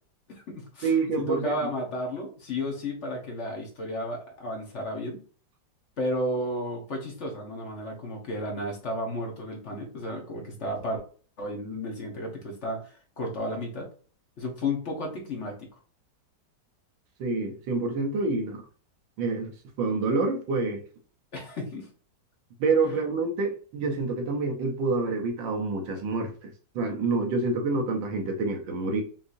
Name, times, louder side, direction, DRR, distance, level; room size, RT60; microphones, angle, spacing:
voice 1, 0.3-0.9 1.2-5.2 6.0-11.0 11.4-13.9 14.4-15.7 21.3-21.9 22.8-23.0, left 1 dB, 45° left, 1.2 m, -33 dB
voice 2, 0.8-1.7 17.2-18.6 19.2-20.8 22.6-29.0, right 3 dB, 85° right, 1.7 m, -27 dB
5.6 x 3.2 x 2.6 m
omnidirectional pair, 2.0 m